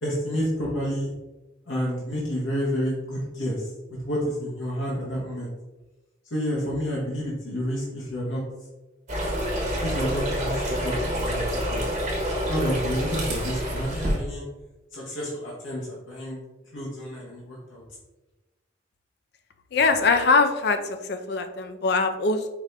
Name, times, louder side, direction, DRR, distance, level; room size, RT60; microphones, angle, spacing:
voice 1, 0.0-1.1 1.7-3.7 4.0-5.5 6.3-8.4 9.8-11.9 12.5-14.4 14.9-16.4 16.7-17.8, equal, 80° left, -5 dB, 1.0 m, -29 dB
sound 1, 9.1-14.2, equal, 40° right, 1.1 m, -27 dB
voice 2, 19.7-22.5, left 4 dB, 55° left, 8 dB, 0.4 m, -22 dB
4.8 x 2.5 x 3.3 m, 1.1 s
head